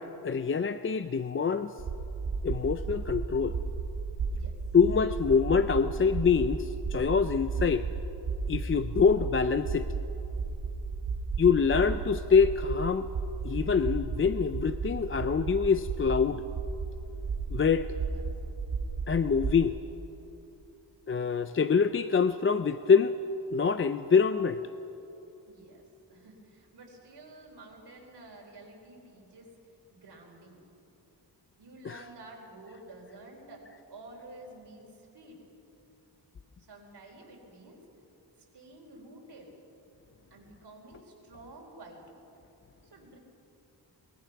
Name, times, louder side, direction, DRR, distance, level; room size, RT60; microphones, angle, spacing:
voice 1, 0.0-1.7 2.4-3.6 4.7-7.8 8.5-9.9 11.4-13.1 13.4-16.5 17.5-17.9 19.1-19.8 21.1-23.2 23.5-24.6 31.9-32.0, left 6 dB, 30° left, 11 dB, 0.4 m, -25 dB
sound 1, 1.8-19.6, right 4 dB, 85° right, 3.6 m, -34 dB
voice 2, 25.5-29.6 29.9-30.7 31.6-35.4 36.6-37.9 38.4-39.6 40.3-42.3 42.9-43.2, right 2 dB, 70° right, 1 dB, 4.1 m, -50 dB
23.0 x 21.0 x 5.8 m, 3.0 s
wide cardioid pair, 175°, 42 cm